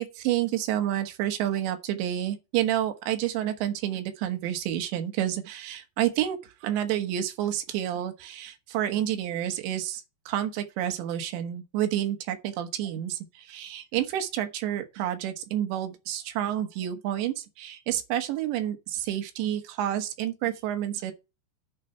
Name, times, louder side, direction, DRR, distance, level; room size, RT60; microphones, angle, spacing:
voice 1, 0.0-21.1, right 11 dB, 80° right, 3.4 m, -29 dB
10.5 x 5.4 x 5.6 m
omnidirectional pair, 5.1 m